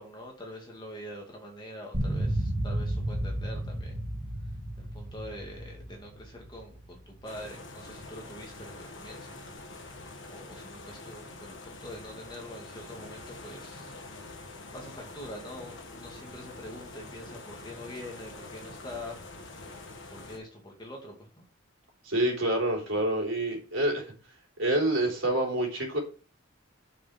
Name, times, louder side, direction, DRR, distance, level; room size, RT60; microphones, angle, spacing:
voice 1, 0.0-3.9 4.8-9.4 10.3-14.0 14.7-19.2 20.1-21.4, left 1 dB, 20° left, 0 dB, 2.3 m, -44 dB
sound 1, 1.9-7.3, right 1 dB, 50° right, 2.8 m, -33 dB
sound 2, 7.2-20.4, left 2 dB, 75° left, 1.7 m, -45 dB
voice 2, 22.0-24.1 24.6-26.0, right 1 dB, 75° right, 0 dB, 3.6 m, -27 dB
7.1 x 6.9 x 4.4 m, 0.36 s
head